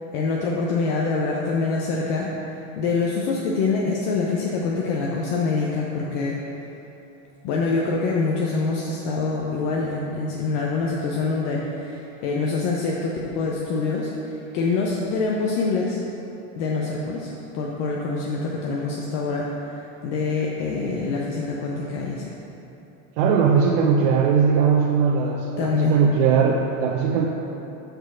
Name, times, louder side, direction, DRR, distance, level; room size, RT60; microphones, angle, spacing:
voice 1, 0.1-6.4 7.4-16.0 16.6-22.3 25.6-26.0, left 4 dB, 65° left, -2 dB, 0.9 m, -25 dB
voice 2, 23.2-27.3, right 6 dB, 65° right, -1 dB, 0.7 m, -19 dB
6.4 x 4.9 x 6.2 m, 3.0 s
supercardioid pair, 140°, 39 cm